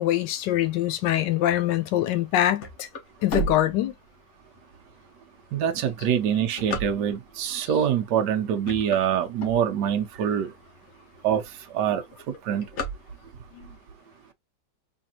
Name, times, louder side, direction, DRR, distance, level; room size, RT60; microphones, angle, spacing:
voice 1, 0.0-2.9 3.2-3.9 13.5-13.7, left 13 dB, 90° left, 1.3 m, -24 dB
sound 1, 2.3-4.4 5.0-5.1 5.7-7.4 8.1-8.3 8.6-10.1 10.6-10.7 10.9-11.0 11.3-11.7 11.9-13.6, right 1 dB, 50° left, 1.0 m, -33 dB
voice 2, 5.5-10.5 11.2-11.4 11.7-12.7, right 9 dB, 75° right, 1.3 m, -25 dB
3.5 x 3.3 x 2.7 m
omnidirectional pair, 1.9 m